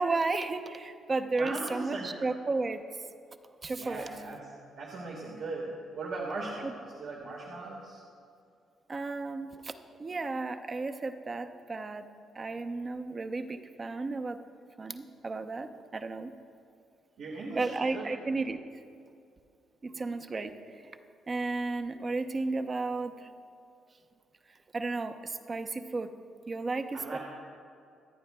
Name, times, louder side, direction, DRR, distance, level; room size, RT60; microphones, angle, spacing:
voice 1, 0.0-2.8 3.6-4.1 6.6-6.7 8.9-9.7 10.0-12.1 12.3-14.4 14.8-16.3 17.5-18.6 19.8-20.9 21.3-23.3 24.5-26.1 26.5-27.2, right 3 dB, 35° right, 7 dB, 0.7 m, -33 dB
voice 2, 1.4-2.1 3.7-4.5 4.8-8.0 17.2-18.2 19.9-20.1 26.9-27.2, right 3 dB, 70° right, -2 dB, 1.7 m, -39 dB
25.0 x 9.2 x 2.2 m, 2.4 s
cardioid pair, 90°, 0 cm